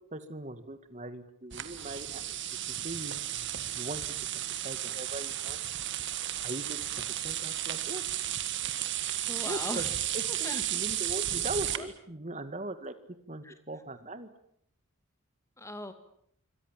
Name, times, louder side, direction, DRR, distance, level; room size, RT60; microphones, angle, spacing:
voice 1, 0.1-2.4 2.7-3.5 3.7-4.0 4.6-5.6 6.4-6.8 7.2-8.0 9.4-9.9 10.1-12.9 13.3-14.3, right 2 dB, 35° right, 11 dB, 2.1 m, -40 dB
sound 1, 1.5-11.8, right 12 dB, 55° right, 1.8 m, -34 dB
voice 2, 9.3-9.9 10.3-10.6 11.7-11.9 13.4-13.5 15.6-15.9, left 1 dB, 15° left, 9 dB, 2.3 m, -39 dB
27.5 x 25.0 x 7.6 m, 0.68 s
head